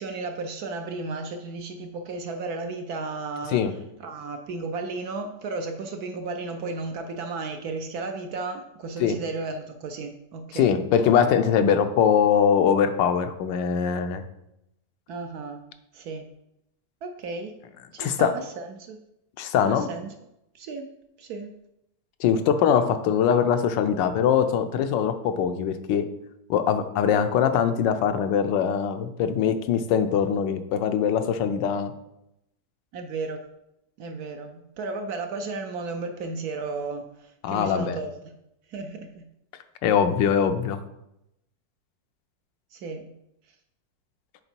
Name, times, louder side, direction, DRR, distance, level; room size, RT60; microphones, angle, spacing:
voice 1, 0.0-10.8 15.1-15.6 15.9-16.2 17.0-17.6 17.9-19.0 19.7-20.1 20.5-20.9 21.2-21.5 32.9-33.4 34.0-38.3 38.7-39.3 42.7-43.1, right 3 dB, 70° right, 5 dB, 1.0 m, -34 dB
voice 2, 10.5-14.2 18.0-18.3 19.4-19.9 22.2-26.0 26.5-31.9 37.4-38.0 39.8-40.8, left 7 dB, 80° left, 9 dB, 1.3 m, -22 dB
6.8 x 4.4 x 4.4 m, 0.84 s
omnidirectional pair, 2.0 m